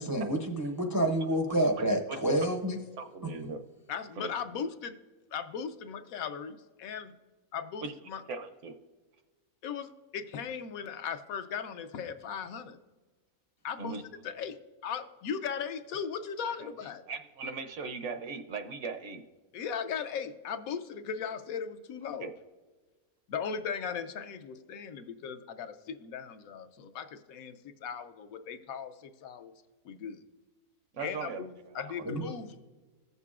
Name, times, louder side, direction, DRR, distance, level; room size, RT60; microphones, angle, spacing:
voice 1, 0.1-2.8 32.1-32.3, right 1 dB, 30° right, 2 dB, 0.4 m, -28 dB
voice 2, 3.0-3.6 4.2-4.3 7.8-7.9 8.3-8.8 13.8-14.0 17.1-19.2 22.2-22.3 30.9-31.4 31.7-32.0, right 4 dB, 65° right, 8 dB, 0.9 m, -38 dB
voice 3, 3.9-4.9 5.3-7.1 7.5-8.2 9.6-12.8 13.6-17.0 19.5-22.3 23.3-29.5 29.8-30.2 31.0-32.6, left 7 dB, 80° left, 9 dB, 1.0 m, -38 dB
15.5 x 6.8 x 2.4 m, 1.3 s
omnidirectional pair, 1.5 m